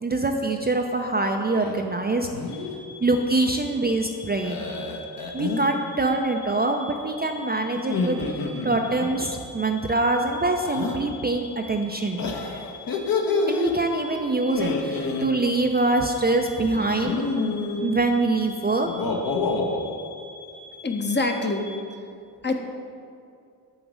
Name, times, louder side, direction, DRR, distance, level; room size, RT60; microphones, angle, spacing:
voice 1, 0.0-2.3 3.0-4.6 5.3-8.2 8.6-12.2 13.5-17.2 17.8-18.9, right 2 dB, 20° right, 3 dB, 0.6 m, -24 dB
sound 1, 1.5-1.8 2.2-2.7 4.4-5.7 7.8-9.1 10.6-11.0 12.2-13.7 14.4-15.3 16.7-17.8 18.8-19.8, left 4 dB, 50° left, 1.1 m, -28 dB
sound 2, 2.5-21.8, left 3 dB, 70° left, 1.4 m, -45 dB
voice 2, 20.8-21.7 22.4-22.6, left 2 dB, 25° left, 4 dB, 0.9 m, -25 dB
7.2 x 3.9 x 6.2 m, 2.4 s
hypercardioid pair, 45°, 46 cm